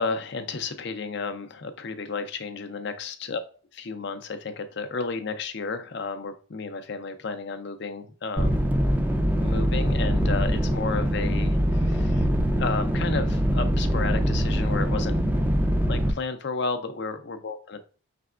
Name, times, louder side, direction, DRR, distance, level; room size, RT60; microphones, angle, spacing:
voice 1, 0.0-3.4 3.7-8.7 9.4-12.3 12.6-15.3 15.9-17.8, left 4 dB, 55° left, 9 dB, 0.5 m, -32 dB
sound 1, 8.4-16.1, equal, 10° right, 0.3 m, -23 dB
5.7 x 3.4 x 2.4 m, 0.39 s
head